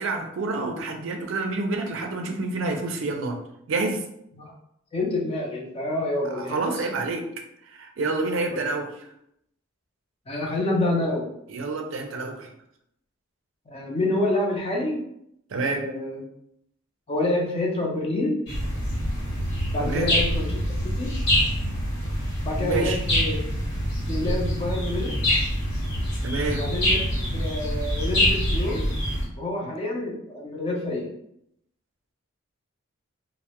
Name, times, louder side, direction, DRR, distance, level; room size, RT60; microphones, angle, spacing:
voice 1, 0.0-3.4 3.7-4.0 6.3-7.2 7.7-8.9 11.5-12.5 15.5-15.9 19.8-20.1 22.6-23.0 26.2-26.6 29.6-29.7, right 3 dB, 65° right, 3 dB, 0.4 m, -28 dB
voice 2, 4.9-6.9 8.4-8.7 10.3-11.3 13.7-15.0 15.6-16.2 17.1-18.4 19.7-21.1 22.4-23.4 24.1-25.1 26.5-28.9 29.4-31.1, left 2 dB, 30° left, -1 dB, 0.5 m, -28 dB
sound 1, 18.5-29.2, equal, 55° left, 1.0 m, -25 dB
2.1 x 2.0 x 2.8 m, 0.75 s
head